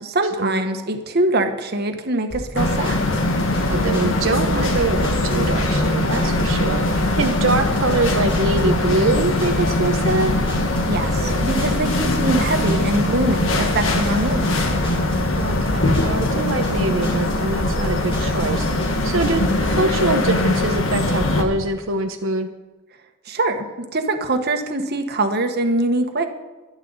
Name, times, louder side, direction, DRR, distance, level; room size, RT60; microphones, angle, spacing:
voice 1, 0.0-3.0 10.9-14.5 23.3-26.3, right 2 dB, 55° right, 6 dB, 1.5 m, -23 dB
sound 1, 2.3-19.7, equal, 30° left, 6.1 m, -33 dB
sound 2, 2.6-21.4, left 1 dB, 80° left, 1.8 m, -21 dB
voice 2, 3.7-10.4 15.3-22.5, right 3 dB, 85° right, 4 dB, 0.9 m, -24 dB
24.5 x 8.8 x 4.1 m, 1.2 s
head